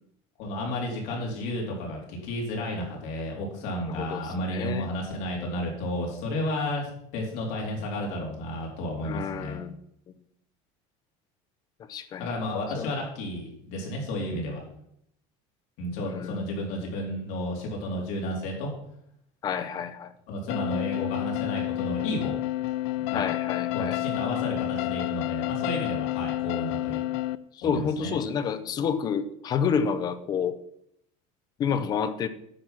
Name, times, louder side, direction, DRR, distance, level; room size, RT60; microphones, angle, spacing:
voice 1, 0.4-9.6 12.2-14.6 15.8-18.7 20.3-22.4 23.0-23.2 23.7-27.1 27.6-28.1, left 1 dB, 55° left, -1 dB, 3.7 m, -32 dB
voice 2, 3.9-4.9 9.0-9.8 11.9-12.3 12.8-12.9 16.0-16.4 19.4-20.1 23.1-24.0 27.6-30.6 31.6-32.3, left 7 dB, 25° left, 10 dB, 0.6 m, -29 dB
sound 1, 20.5-27.4, left 17 dB, 75° left, 0.5 m, -30 dB
10.0 x 7.7 x 5.9 m, 0.73 s
cardioid pair, 180°, 15 cm